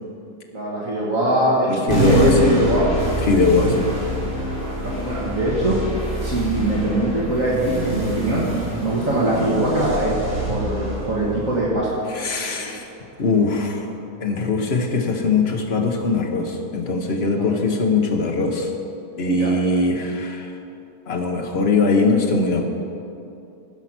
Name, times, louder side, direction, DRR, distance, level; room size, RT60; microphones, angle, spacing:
voice 1, 0.5-2.9 4.8-5.8 6.2-8.4 8.8-11.9 12.6-12.8 17.3-17.5 19.3-19.5, right 1 dB, 55° right, -6 dB, 1.9 m, -22 dB
voice 2, 1.7-2.5 3.3-3.9 12.1-12.8 13.2-13.9 14.2-18.7 19.2-20.5 21.1-22.6, left 3 dB, 45° left, 2 dB, 1.2 m, -21 dB
sound 1, 1.9-12.7, right 1 dB, 20° right, 3.1 m, -26 dB
15.0 x 5.8 x 6.0 m, 2.7 s
omnidirectional pair, 1.7 m